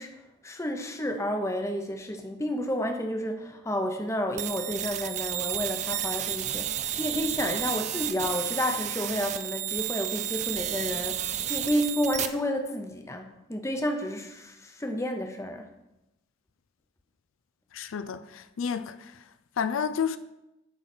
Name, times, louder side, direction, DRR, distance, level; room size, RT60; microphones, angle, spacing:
voice 1, 0.0-15.7, equal, 15° left, 0.7 m, -31 dB
sound 1, 4.4-12.3, right 11 dB, 35° right, 0.4 m, -32 dB
voice 2, 17.7-19.1 19.6-20.2, left 7 dB, 85° left, 0.4 m, -30 dB
9.4 x 3.9 x 5.9 m
head